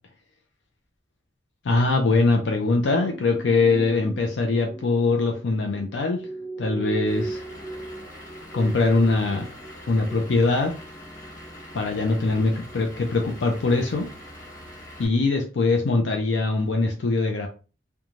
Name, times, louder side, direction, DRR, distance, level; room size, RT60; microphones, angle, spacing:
voice 1, 1.6-6.2 6.6-7.4 8.5-9.5 9.9-10.7 11.7-14.1 15.0-17.5, left 3 dB, 80° left, 3 dB, 0.5 m, -22 dB
sound 1, 2.6-12.4 12.7-12.9, right 2 dB, 25° right, 0.5 m, -39 dB
Vehicle / Engine, 7.1-15.1, equal, 50° left, 1.2 m, -43 dB
3.0 x 2.2 x 2.5 m, 0.34 s
head